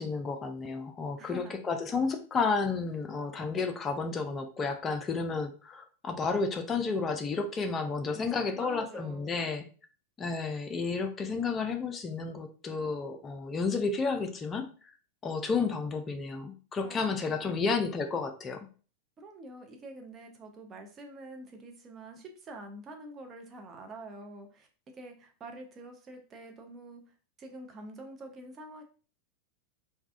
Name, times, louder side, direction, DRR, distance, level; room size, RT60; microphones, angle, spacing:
voice 1, 0.0-9.7 10.2-14.7 15.2-18.7, left 4 dB, 20° left, 5 dB, 0.5 m, -31 dB
voice 2, 1.2-1.5 8.1-9.4 16.8-17.5 19.2-24.7 25.0-27.0 27.4-28.8, right 2 dB, 25° right, 3 dB, 0.6 m, -46 dB
3.3 x 2.2 x 2.4 m, 0.39 s
figure-of-eight pair, 90°, 0 cm